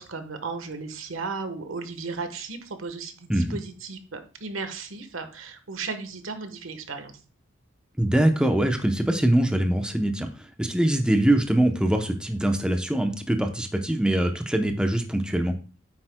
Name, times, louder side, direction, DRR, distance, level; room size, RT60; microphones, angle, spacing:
voice 1, 0.0-7.1, right 4 dB, 85° right, 8 dB, 1.2 m, -35 dB
voice 2, 8.0-15.5, right 1 dB, 5° right, 5 dB, 0.7 m, -23 dB
8.9 x 8.0 x 2.2 m, 0.35 s
head